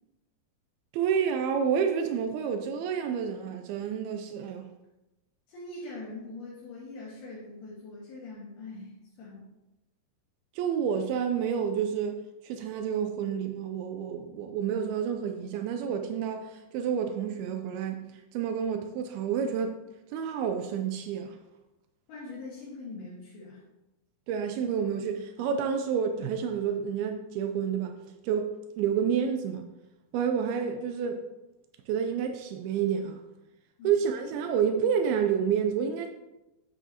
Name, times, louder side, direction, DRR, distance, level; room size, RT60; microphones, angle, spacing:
voice 1, 0.9-4.7 10.6-18.0 18.3-19.8 20.1-21.4 24.3-28.0 28.2-29.7 30.1-31.2 31.9-33.2 33.8-36.1, right 7 dB, 90° right, 2.1 m, -29 dB
voice 2, 5.5-9.5 22.1-23.6 33.8-33.9, left 2 dB, 65° left, 3.4 m, -42 dB
10.0 x 8.2 x 2.8 m
omnidirectional pair, 5.0 m